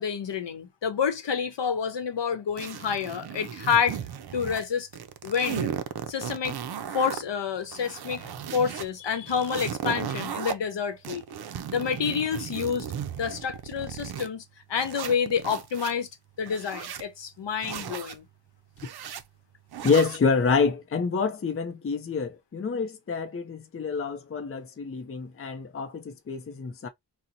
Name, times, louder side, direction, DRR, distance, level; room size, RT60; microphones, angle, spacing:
voice 1, 0.0-4.0 4.3-4.9 5.2-5.7 6.1-6.6 6.9-11.2 11.7-12.9 13.2-14.4 14.7-16.1 16.4-18.3, left 7 dB, 80° left, 0.8 m, -28 dB
sound 1, 2.6-4.7 4.9-7.2 7.6-8.9 9.3-10.5 11.0-14.3 14.8-15.9 16.4-17.1 17.6-18.2 18.8-19.2 19.7-20.2, right 8 dB, 65° right, 0.5 m, -36 dB
voice 2, 19.8-26.9, left 5 dB, 35° left, 0.5 m, -27 dB
2.8 x 2.1 x 3.8 m
wide cardioid pair, 105°, 42 cm